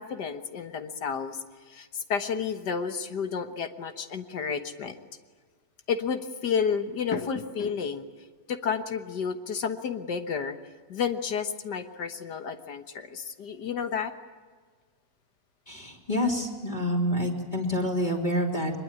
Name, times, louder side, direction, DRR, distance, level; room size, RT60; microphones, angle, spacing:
voice 1, 0.0-1.4 1.7-5.0 5.9-8.1 8.5-10.6 10.9-14.1, left 6 dB, 75° left, 8 dB, 1.8 m, -31 dB
voice 2, 15.7-18.7, equal, 25° left, -2 dB, 3.4 m, -27 dB
24.0 x 21.5 x 9.6 m, 1.5 s
omnidirectional pair, 1.8 m